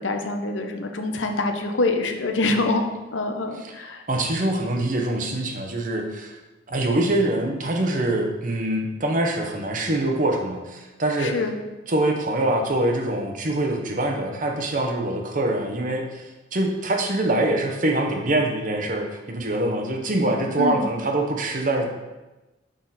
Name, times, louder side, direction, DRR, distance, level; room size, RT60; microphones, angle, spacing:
voice 1, 0.0-2.8 3.1-4.0 11.2-11.6 20.6-20.9, left 2 dB, 85° left, 4 dB, 0.8 m, -25 dB
voice 2, 4.1-6.4 6.7-11.3 11.9-21.9, right 1 dB, 45° right, 3 dB, 0.9 m, -24 dB
6.4 x 5.7 x 4.1 m, 1.1 s
head